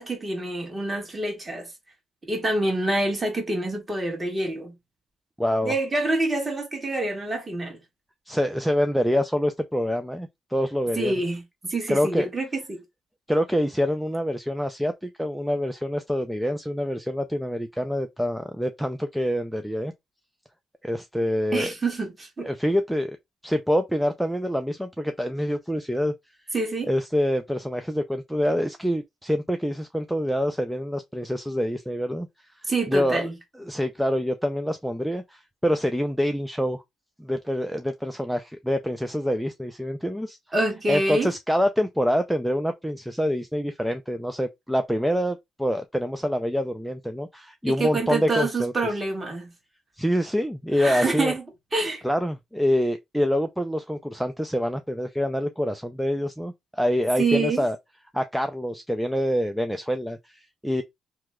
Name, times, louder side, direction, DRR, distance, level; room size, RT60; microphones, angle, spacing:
voice 1, 0.0-1.7 2.3-4.7 5.6-7.8 11.0-12.8 21.5-22.5 26.5-26.9 32.7-33.3 40.5-41.3 47.7-49.5 50.8-51.4 51.7-52.0 57.2-57.6, right 2 dB, 25° right, 1.5 m, -26 dB
voice 2, 5.4-5.7 8.3-11.1 11.9-12.3 13.3-19.9 20.8-21.7 22.4-23.2 23.4-26.1 26.9-32.3 32.6-33.2 33.7-36.8 37.2-40.4 40.9-48.7 50.0-51.3 52.0-57.8 58.1-60.8, equal, ahead, 0.4 m, -26 dB
2.9 x 2.2 x 3.5 m
cardioid pair, 90°, 0 cm